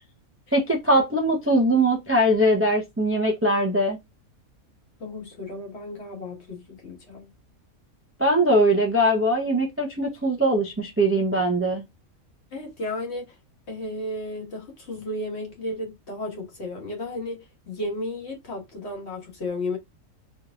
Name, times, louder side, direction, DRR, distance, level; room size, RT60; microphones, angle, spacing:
voice 1, 0.5-4.0 8.2-11.8, right 1 dB, 20° right, 0.3 m, -21 dB
voice 2, 5.0-7.3 12.5-13.4 13.7-19.8, left 1 dB, 50° left, 1.5 m, -33 dB
3.4 x 3.2 x 2.3 m
omnidirectional pair, 1.5 m